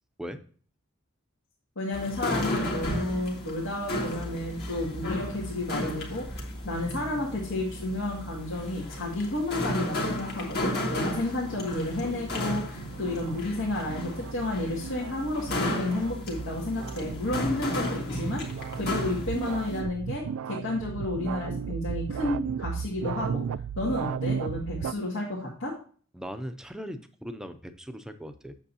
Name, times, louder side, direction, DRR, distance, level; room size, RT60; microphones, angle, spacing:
voice 1, 1.8-18.4 18.8-23.5 23.8-25.7, left 2 dB, 75° left, -6 dB, 2.0 m, -31 dB
sound 1, 1.9-19.8, left 1 dB, 50° left, 1.8 m, -34 dB
sound 2, 11.3-24.9, right 7 dB, 75° right, 0.3 m, -35 dB
voice 2, 26.1-28.5, equal, 5° right, 8 dB, 0.5 m, -39 dB
8.1 x 6.9 x 2.8 m, 0.43 s
head